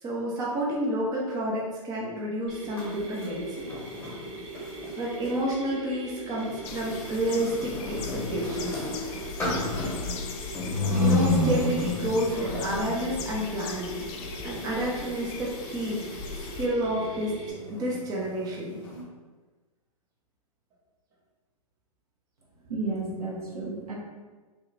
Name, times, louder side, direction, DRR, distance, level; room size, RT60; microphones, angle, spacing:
voice 1, 0.0-3.7 5.0-8.9 11.0-14.0 14.4-16.0 16.3-18.8, right 1 dB, 20° right, -4 dB, 0.7 m, -30 dB
Mechanisms, 2.5-17.5, right 2 dB, 45° right, 1.1 m, -41 dB
sound 1, 2.6-5.4 6.3-19.0, left 2 dB, 10° left, 1.3 m, -32 dB
sound 2, 6.6-16.7, left 5 dB, 30° left, 0.4 m, -39 dB
voice 2, 22.7-23.9, right 3 dB, 75° right, -4 dB, 1.4 m, -32 dB
3.2 x 2.8 x 4.0 m, 1.3 s
hypercardioid pair, 120°, 19 cm